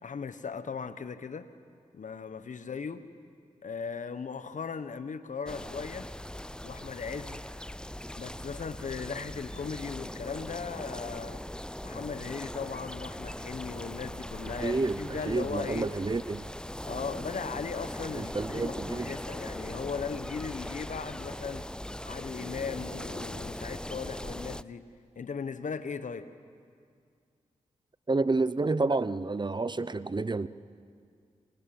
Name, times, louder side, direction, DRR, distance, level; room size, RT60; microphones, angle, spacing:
voice 1, 0.0-1.5 1.9-3.0 3.6-6.1 6.6-7.4 8.2-11.4 11.8-15.9 16.8-21.7 22.1-24.9 25.1-26.3, left 5 dB, 70° left, 12 dB, 1.3 m, -38 dB
sound 1, 5.5-24.6, left 1 dB, 5° left, 0.6 m, -40 dB
voice 2, 14.4-16.5 18.1-19.1 28.1-30.5, right 3 dB, 35° right, 16 dB, 0.8 m, -29 dB
27.5 x 24.5 x 7.8 m, 2.2 s
cardioid pair, 40°, 14 cm